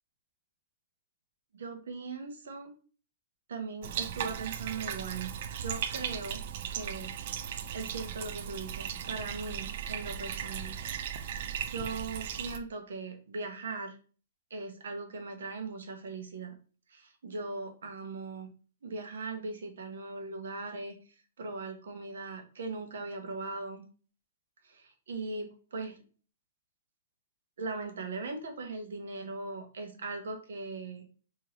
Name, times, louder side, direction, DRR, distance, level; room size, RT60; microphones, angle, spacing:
voice 1, 1.5-2.7 3.5-5.3 5.6-6.4 6.7-7.1 7.7-10.7 11.7-14.0 14.5-16.5 16.9-18.5 18.8-20.9 21.4-23.8 24.6-26.0 27.6-31.0, right 3 dB, 80° right, 4 dB, 0.9 m, -39 dB
Bathtub (filling or washing), 3.8-12.6, right 9 dB, 50° right, 0.3 m, -37 dB
2.9 x 2.8 x 4.0 m, 0.39 s
hypercardioid pair, 155°, 0 cm